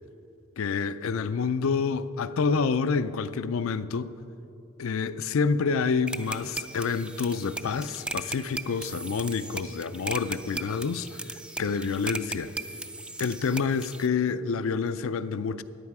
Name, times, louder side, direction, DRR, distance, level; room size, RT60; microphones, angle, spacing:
voice 1, 0.6-4.1 4.8-11.1 11.6-12.5 13.2-15.6, left 5 dB, 70° left, 13 dB, 0.4 m, -28 dB
sound 1, 6.1-14.1, right 2 dB, 5° right, 0.3 m, -37 dB
14.5 x 10.5 x 4.8 m, 2.9 s
head